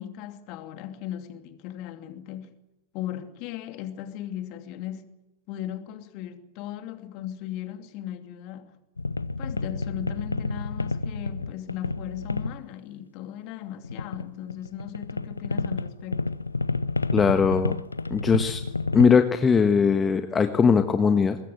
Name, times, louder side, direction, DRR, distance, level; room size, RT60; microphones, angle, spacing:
voice 1, 0.0-2.6 2.9-5.2 5.5-8.8 9.4-16.3, left 11 dB, 45° left, 2.7 m, -37 dB
sound 1, 9.0-12.6 13.8-19.1, left 3 dB, 80° left, 0.8 m, -30 dB
voice 2, 17.1-17.7 18.1-18.6 18.9-21.4, left 5 dB, 20° left, 1.4 m, -20 dB
25.0 x 21.0 x 7.6 m
figure-of-eight pair, 90°, 0 cm